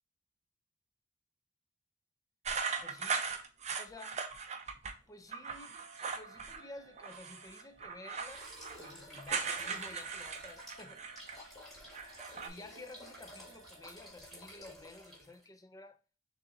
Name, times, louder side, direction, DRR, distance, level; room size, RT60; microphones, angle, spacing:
sound 1, 2.4-4.9 5.3-6.6 7.0-11.5 11.8-12.5, right 5 dB, 40° right, 0.6 m, -39 dB
voice 1, 2.8-3.1 3.8-4.2 5.1-5.8 6.1-8.5 8.8-11.0 12.0-16.0, left 2 dB, 20° left, 0.5 m, -52 dB
sound 2, 5.4-14.5, right 4 dB, 70° right, 0.9 m, -62 dB
sound 3, 8.2-15.4, left 1 dB, ahead, 2.0 m, -52 dB
6.5 x 2.7 x 2.6 m
head